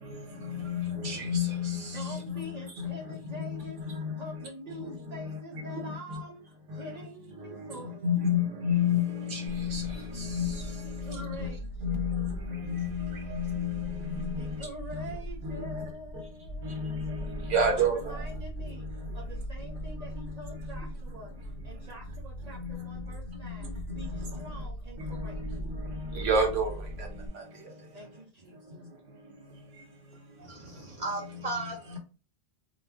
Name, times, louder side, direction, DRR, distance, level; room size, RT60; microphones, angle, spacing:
voice 1, 0.0-2.5 2.8-3.0 3.4-4.5 4.8-6.2 6.7-7.0 7.4-7.8 8.0-11.5 11.8-15.1 15.4-15.8 16.6-18.2 22.6-22.9 23.6-24.0 25.0-26.7 27.0-27.1 27.3-27.4 31.9-32.0, left 3 dB, 75° right, 1.1 m, -31 dB
voice 2, 1.9-8.4 11.0-12.3 14.4-17.0 17.5-21.3 21.6-23.7 23.9-25.4 27.9-28.8, equal, 55° right, 0.5 m, -45 dB
sound 1, 9.5-27.3, equal, 90° left, 1.0 m, -40 dB
voice 3, 30.4-32.0, right 2 dB, 35° right, 0.9 m, -36 dB
2.3 x 2.1 x 3.4 m
omnidirectional pair, 1.3 m